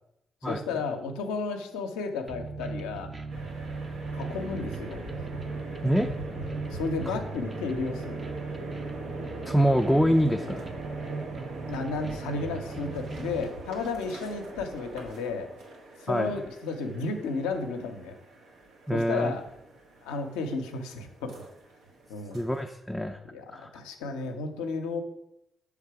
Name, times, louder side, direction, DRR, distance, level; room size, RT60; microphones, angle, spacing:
voice 1, 0.4-3.1 4.1-5.0 6.7-8.3 11.7-15.5 16.0-18.2 18.9-19.4 20.0-21.4 22.1-22.4 23.3-25.0, left 4 dB, 85° left, 5 dB, 0.6 m, -33 dB
sound 1, 2.3-13.4, right 4 dB, 35° right, 0.7 m, -38 dB
sound 2, 3.3-22.7, right 2 dB, 85° right, 1.2 m, -42 dB
voice 2, 9.5-10.7 16.1-16.3 18.9-19.3 22.3-23.2 23.5-23.7, equal, 5° left, 3 dB, 0.4 m, -25 dB
6.5 x 3.5 x 4.7 m, 0.82 s
hypercardioid pair, 45°, 0 cm